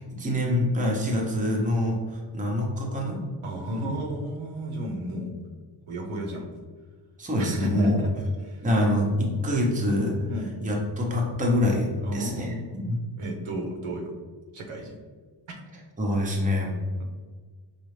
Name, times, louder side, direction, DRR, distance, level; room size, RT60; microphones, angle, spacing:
voice 1, 0.0-3.2 3.7-3.8 7.2-8.0 8.6-10.1 10.6-12.5 12.9-13.0 16.0-16.7, left 1 dB, 15° right, -1 dB, 0.7 m, -25 dB
voice 2, 3.4-5.3 5.9-6.5 7.4-8.7 10.3-10.5 12.0-12.8 13.2-14.1 14.5-15.0 15.5-15.6 17.0-17.1, right 1 dB, 85° right, 1 dB, 0.9 m, -33 dB
5.2 x 2.4 x 3.2 m, 1.5 s
wide cardioid pair, 130°, 48 cm